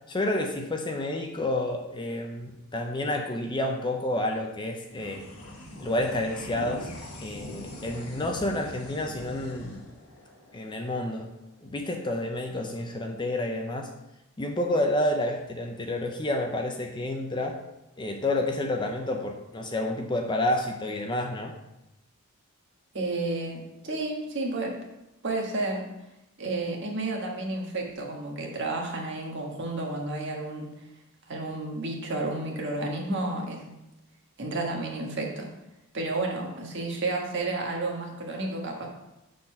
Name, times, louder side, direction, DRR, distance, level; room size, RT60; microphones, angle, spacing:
voice 1, 0.1-5.2 5.8-6.9 7.2-9.8 10.5-11.3 11.6-13.9 14.4-17.6 18.0-21.5, left 1 dB, 20° left, 3 dB, 0.6 m, -29 dB
sound 1, 4.9-11.6, left 1 dB, 85° left, 1.2 m, -42 dB
voice 2, 22.9-24.8 25.2-25.9 26.4-30.7 31.3-33.7 34.4-35.5 35.9-38.9, right 2 dB, 55° right, 0 dB, 1.4 m, -31 dB
6.5 x 4.1 x 5.5 m, 0.93 s
head